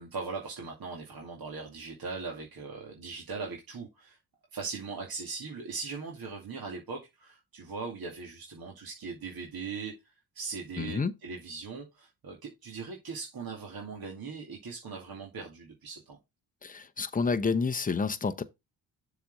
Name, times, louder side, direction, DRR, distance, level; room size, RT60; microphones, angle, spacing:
voice 1, 0.0-4.2 4.5-10.0 10.3-16.2, right 4 dB, 45° right, 2.3 m, -40 dB
voice 2, 10.8-11.1 16.6-18.4, left 4 dB, 15° left, 0.8 m, -29 dB
7.0 x 4.1 x 5.2 m
hypercardioid pair, 50°, 49 cm